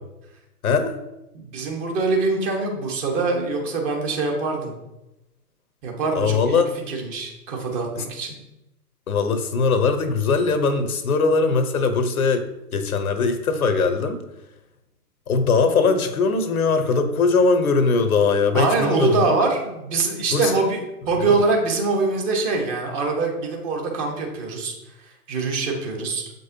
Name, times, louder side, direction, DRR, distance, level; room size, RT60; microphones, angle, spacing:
voice 1, 0.6-1.0 6.1-6.7 8.0-8.1 9.1-14.2 15.3-19.2 20.3-20.5, left 4 dB, 65° left, 9 dB, 0.9 m, -20 dB
voice 2, 1.3-4.7 5.8-6.6 6.9-8.4 18.5-26.3, right 3 dB, 25° right, 1 dB, 1.4 m, -24 dB
7.6 x 5.3 x 2.8 m, 0.92 s
figure-of-eight pair, 115°, 46 cm